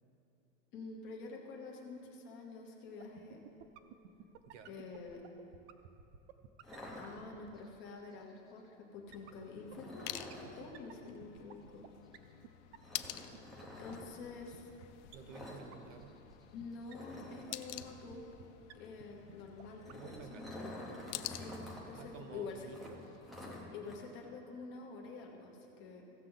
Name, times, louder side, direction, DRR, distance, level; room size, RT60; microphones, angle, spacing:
voice 1, 0.7-3.5 4.6-5.2 7.0-10.2 10.5-11.9 13.8-14.7 16.5-18.3 18.7-20.7 21.2-21.6 21.9-22.7 23.7-26.0, left 4 dB, 30° left, 0 dB, 1.1 m, -48 dB
sound 1, 3.0-7.6 9.1-11.9 12.1-12.2 12.4-12.5 12.7-12.8 13.0-13.1 13.3-13.4 13.6-13.7 13.9-14.0 14.2-14.3 14.5-14.6 14.8-14.9 15.1-15.2 15.4-15.5 15.7-15.8 16.0-16.3 16.6-16.7 16.9-17.0 17.2-17.3 17.5-17.6 17.8-17.9 18.1-18.2 18.4-18.5 18.7-18.8 19.0-19.1 19.3-19.4 19.6-19.7 19.9-20.2 20.5-20.6 20.8-20.9, right 10 dB, 60° right, 0.6 m, -52 dB
voice 2, 4.4-4.8 15.1-16.2 19.9-20.5 21.9-23.0, right 6 dB, 85° right, 8 dB, 1.0 m, -52 dB
sound 2, 6.6-7.7 9.7-10.6 12.8-14.1 15.3-15.7 15.9-16.1 16.4-16.5 16.9-18.0 19.6-21.8 22.1-22.2 22.7-24.0, left 1 dB, ahead, 0.7 m, -49 dB
sound 3, 9.1-23.3, left 14 dB, 65° left, 0.5 m, -50 dB
16.0 x 6.7 x 3.9 m, 2.8 s
supercardioid pair, 175°, 38 cm